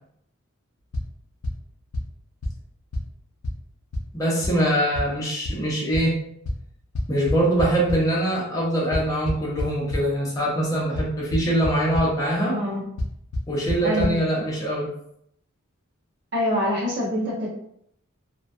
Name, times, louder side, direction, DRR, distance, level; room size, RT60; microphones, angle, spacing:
sound 1, 0.9-1.0 1.4-1.5 1.9-2.0 2.4-2.5 2.9-3.0 3.4-3.5 3.9-4.0 4.4-4.5 4.9-5.0 5.4-5.5 5.9-6.0 6.4-6.5 6.9-7.9 8.9-10.0 10.9-11.0 11.3-11.7 11.9-12.0 13.0-13.1 13.3-13.4 13.7-13.8 14.0-14.1, left 1 dB, 90° left, 0.5 m, -25 dB
voice 1, 4.1-6.1 7.1-12.5 13.5-14.9, right 1 dB, 15° left, -6 dB, 0.6 m, -23 dB
voice 2, 12.5-12.8 13.8-14.1 16.3-17.5, left 1 dB, 50° right, -6 dB, 0.8 m, -25 dB
2.2 x 2.2 x 2.6 m, 0.71 s
head